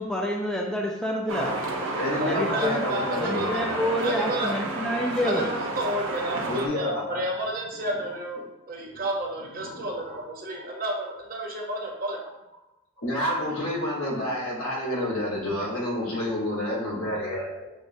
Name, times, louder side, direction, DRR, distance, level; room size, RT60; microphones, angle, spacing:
voice 1, 0.0-1.6 2.2-2.9 3.2-5.5, equal, 5° left, -1 dB, 0.3 m, -28 dB
voice 2, 1.3-1.7 2.0-3.8 6.2-7.2 8.8-9.1 9.6-10.2 10.6-10.7 13.0-17.7, left 1 dB, 85° left, -4 dB, 1.3 m, -30 dB
sound 1, 1.3-6.7, right 2 dB, 75° right, 0.6 m, -31 dB
voice 3, 2.2-4.5 5.2-12.2, right 1 dB, 45° right, -1 dB, 0.8 m, -31 dB
6.3 x 2.1 x 2.6 m, 0.93 s
head